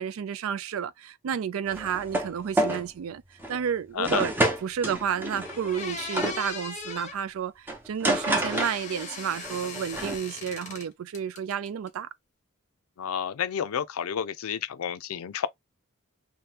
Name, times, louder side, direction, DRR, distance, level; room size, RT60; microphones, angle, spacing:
voice 1, 0.0-3.2 3.5-4.3 4.6-12.1, right 8 dB, 75° right, 0.4 m, -31 dB
sound 1, 1.7-2.3 2.6-2.9 3.4-3.6 4.0-6.4 7.7-9.1 9.4-10.2, right 1 dB, 10° right, 0.7 m, -28 dB
sound 2, 5.0-5.1 5.4-7.2 8.1-10.9 11.1-11.9, left 5 dB, 35° left, 0.7 m, -39 dB
voice 2, 13.0-15.5, left 8 dB, 85° left, 0.4 m, -30 dB
2.8 x 2.2 x 3.4 m
head